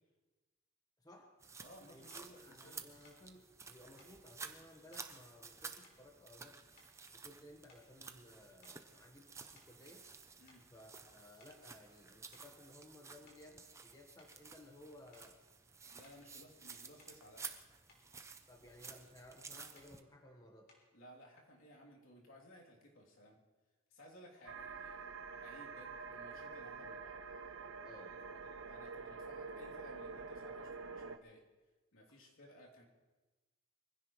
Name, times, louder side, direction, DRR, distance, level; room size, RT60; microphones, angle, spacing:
voice 1, 1.0-1.3 1.9-6.7 7.1-10.1 10.7-15.4 18.5-20.7 27.8-28.5, left 1 dB, 15° left, 2 dB, 1.2 m, -58 dB
sound 1, 1.4-20.0, right 5 dB, 15° right, 0.6 m, -53 dB
voice 2, 1.6-3.0 10.4-10.7 15.9-17.4 20.9-23.4 23.9-27.2 27.9-31.4 31.9-32.8, equal, 75° left, -2 dB, 3.1 m, -59 dB
sound 2, 2.1-2.3 3.0-3.3 4.0-4.2 4.9-5.1 5.8-6.4 6.8-7.1 7.6-8.0 8.6-10.2 10.5-10.7 11.4-11.7 12.3-12.5 13.1-13.5 14.2-14.4 15.1-15.4 16.0-16.3 17.0-17.3 17.7-18.1 18.8-19.0 19.7-20.0 20.7-21.0, left 2 dB, 45° left, 3.4 m, -68 dB
sound 3, 24.5-31.2, right 4 dB, 70° right, 0.7 m, -47 dB
24.0 x 16.0 x 3.1 m, 1.2 s
head